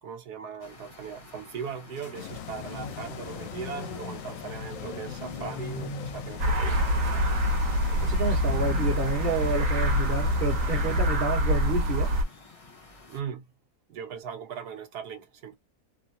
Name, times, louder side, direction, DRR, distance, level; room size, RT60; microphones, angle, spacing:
voice 1, 0.0-6.8 13.1-13.4 13.9-15.5, right 7 dB, 80° right, 1.3 m, -39 dB
sound 1, 0.6-13.2, left 3 dB, 35° left, 0.5 m, -44 dB
sound 2, 2.1-11.1, left 8 dB, 70° left, 0.8 m, -40 dB
sound 3, 6.4-12.2, equal, 55° right, 1.4 m, -25 dB
voice 2, 8.0-12.2, right 4 dB, 35° right, 1.1 m, -30 dB
3.4 x 2.1 x 2.7 m
omnidirectional pair, 1.7 m